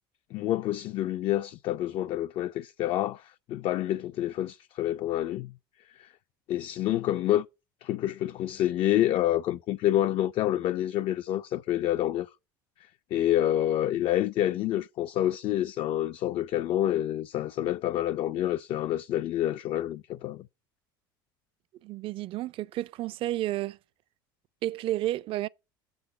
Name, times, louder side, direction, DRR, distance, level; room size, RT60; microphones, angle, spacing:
voice 1, 0.3-5.5 5.9-6.1 6.5-7.5 7.8-12.3 13.1-20.5, left 13 dB, 50° left, 0.4 m, -28 dB
voice 2, 21.8-23.8 24.6-25.5, right 14 dB, 50° right, 0.4 m, -31 dB
7.8 x 3.9 x 6.7 m
hypercardioid pair, 80°, 12 cm